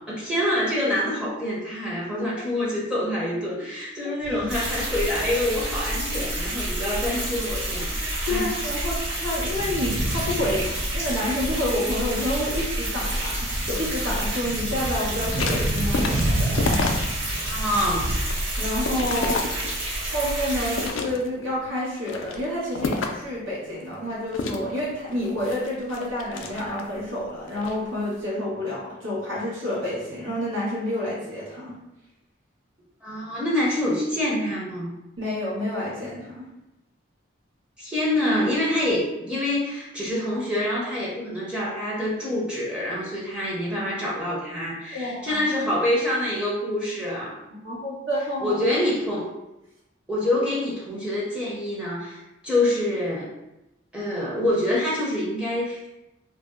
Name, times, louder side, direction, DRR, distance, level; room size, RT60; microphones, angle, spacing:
voice 1, 0.1-7.9 8.3-8.5 17.5-18.1 33.0-34.9 37.8-47.4 48.4-49.3 50.1-53.3 53.9-55.9, left 1 dB, 5° right, -7 dB, 0.6 m, -26 dB
voice 2, 2.1-2.5 4.3-4.4 8.3-16.6 18.6-19.4 20.1-31.7 35.2-36.4 44.9-45.4 47.5-48.6, left 1 dB, 90° right, -7 dB, 1.1 m, -29 dB
sound 1, 4.2-18.2, right 1 dB, 50° right, 0.4 m, -32 dB
sound 2, 4.5-20.9, right 1 dB, 70° right, 1.1 m, -29 dB
sound 3, 15.1-17.3 17.8-20.1 20.6-21.5 22.0-23.3 24.3-27.0 27.5-27.8, left 3 dB, 80° left, 0.4 m, -30 dB
2.5 x 2.1 x 3.5 m, 0.93 s
head